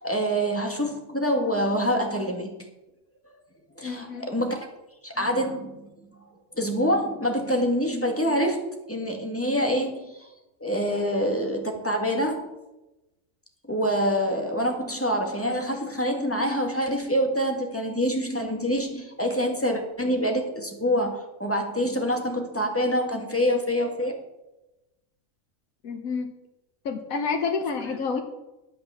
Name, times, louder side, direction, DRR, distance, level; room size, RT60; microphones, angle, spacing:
voice 1, 0.0-2.5 3.8-4.7 5.0-5.9 6.6-10.3 10.6-12.5 13.7-24.2, equal, 10° left, 2 dB, 1.9 m, -26 dB
voice 2, 3.8-4.3 25.8-26.3 26.8-28.2, left 5 dB, 85° left, 4 dB, 1.5 m, -29 dB
12.5 x 7.8 x 7.0 m, 0.99 s
omnidirectional pair, 1.4 m